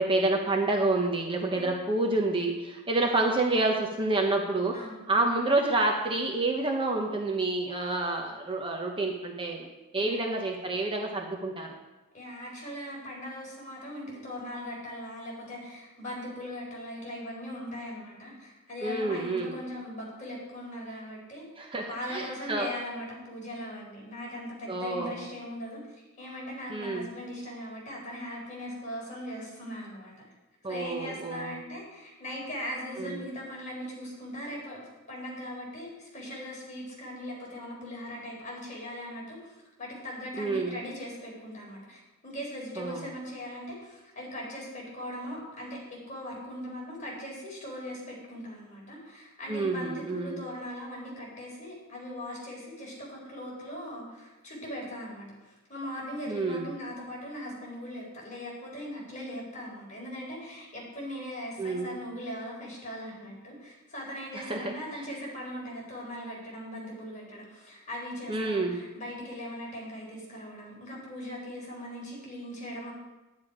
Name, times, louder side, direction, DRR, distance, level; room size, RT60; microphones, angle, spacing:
voice 1, 0.0-9.7 9.9-11.7 18.8-19.5 21.6-22.7 24.7-25.2 26.7-27.1 30.6-31.5 33.0-33.2 40.4-40.8 42.8-43.0 49.5-50.4 56.3-56.7 61.6-62.0 64.3-64.7 68.3-68.8, right 2 dB, 25° right, 1 dB, 1.1 m, -28 dB
voice 2, 4.7-5.0 10.0-10.3 12.1-21.4 21.9-25.8 26.2-30.2 30.7-72.9, equal, 35° left, -4 dB, 4.7 m, -40 dB
10.5 x 10.0 x 5.0 m, 1.1 s
head